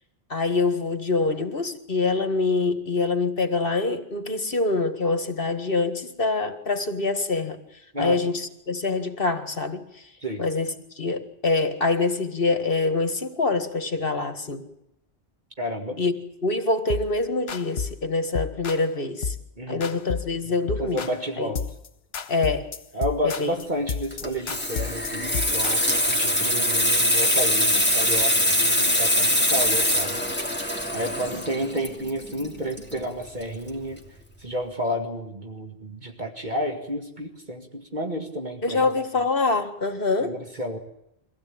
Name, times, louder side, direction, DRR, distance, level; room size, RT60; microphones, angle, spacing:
voice 1, 0.3-7.6 8.0-10.0 10.4-14.7 16.0-16.1 16.4-19.4 19.7-21.1 21.4-21.5 22.3-22.7 23.2-23.5 25.8-26.0 27.7-27.8 38.6-40.4, left 3 dB, 65° left, 8 dB, 2.1 m, -25 dB
voice 2, 15.6-16.0 19.6-19.9 20.6-21.6 22.9-30.2 30.6-34.0 34.4-38.9 40.2-40.8, equal, 50° right, 3 dB, 2.1 m, -31 dB
sound 1, 16.9-17.1 17.5-18.0 18.3-18.9 19.2-19.5 19.8-20.4 20.7-21.2 21.6-21.9 22.1-26.1, left 5 dB, 90° left, 1.3 m, -32 dB
Water tap faucet / Sink (filling or washing), 24.1-33.4 33.7-34.0, equal, 10° left, 2.7 m, -23 dB
24.0 x 16.0 x 8.7 m, 0.85 s
omnidirectional pair, 1.0 m